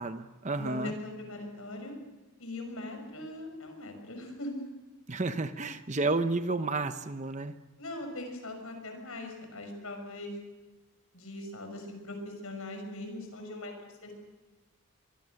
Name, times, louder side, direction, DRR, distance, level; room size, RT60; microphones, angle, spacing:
voice 1, 0.0-0.9 5.1-7.5, right 3 dB, 35° right, 10 dB, 0.8 m, -31 dB
voice 2, 0.6-2.0 2.4-4.5 7.8-10.3 11.1-14.1, left 2 dB, 75° left, 5 dB, 6.0 m, -40 dB
25.5 x 23.0 x 6.5 m, 1.2 s
head